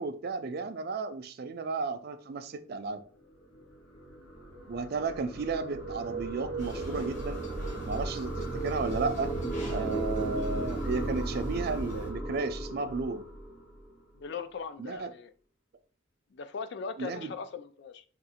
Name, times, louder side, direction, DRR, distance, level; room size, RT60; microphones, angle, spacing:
voice 1, 0.0-3.0 4.7-7.4 7.8-9.3 9.7-13.2 14.8-15.1 17.0-17.3, right 4 dB, 55° right, 0.4 m, -33 dB
sound 1, 3.3-13.9, right 2 dB, 90° left, 2.0 m, -36 dB
sound 2, 6.6-12.1, equal, 45° left, 1.3 m, -43 dB
voice 2, 14.1-15.3 16.3-18.0, left 5 dB, 65° left, 0.4 m, -39 dB
3.6 x 2.4 x 4.2 m
head